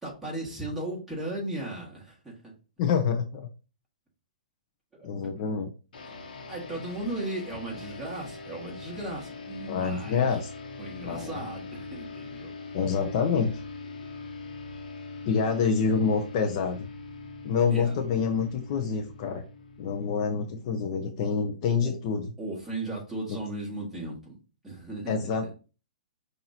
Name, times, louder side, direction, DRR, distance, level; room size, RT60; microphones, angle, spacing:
voice 1, 0.0-2.5 4.9-5.1 6.1-6.2 6.5-10.4 10.8-12.5 17.7-17.9 21.2-21.3 21.7-22.0 22.4-24.4 24.6-25.1, right 2 dB, 5° right, -5 dB, 1.8 m, -36 dB
voice 2, 2.8-3.4 5.0-5.7 9.7-10.5 11.0-11.4 12.7-13.5 15.2-16.8 17.4-19.4 19.8-22.3 25.1-25.5, left 6 dB, 40° left, 3 dB, 0.6 m, -27 dB
sound 1, 5.9-20.7, left 3 dB, 75° left, 1.1 m, -42 dB
5.8 x 2.6 x 2.8 m, 0.33 s
hypercardioid pair, 150°, 5 cm